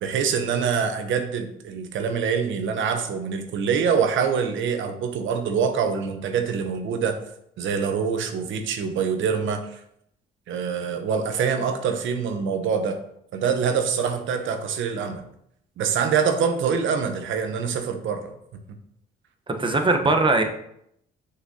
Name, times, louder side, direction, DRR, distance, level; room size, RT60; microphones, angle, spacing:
voice 1, 0.0-7.2 7.6-9.8 10.5-13.0 13.3-15.3 15.8-18.3, right 6 dB, 75° right, 7 dB, 0.8 m, -25 dB
voice 2, 19.5-20.4, right 3 dB, 25° right, 5 dB, 0.9 m, -20 dB
6.3 x 5.8 x 2.8 m, 0.74 s
cardioid pair, 90°, 20 cm